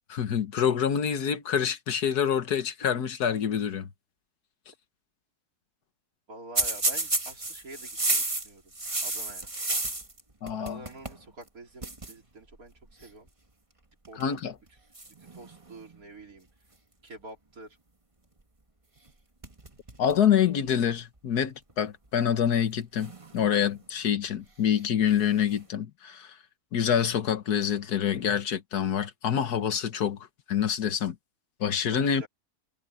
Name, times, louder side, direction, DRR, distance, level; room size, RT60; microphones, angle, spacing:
voice 1, 0.1-3.9 10.4-10.8 14.2-14.6 20.0-26.4 26.7-31.2 31.6-32.3, left 8 dB, 80° left, 1.7 m, -26 dB
voice 2, 6.3-8.7 9.0-9.5 10.6-13.3 14.1-14.4 15.3-16.5 17.0-17.8 31.9-32.3, right 2 dB, 65° right, 4.1 m, -47 dB
sound 1, 6.6-10.2 10.5-11.2 11.5-11.6 11.8-12.1 13.0-13.3 14.0-14.4 14.9-16.0 19.0-19.1 19.4-20.3 20.7-20.8 21.7-21.8 22.9-23.8 25.1-25.6, right 2 dB, 20° right, 1.8 m, -32 dB
omnidirectional pair, 1.6 m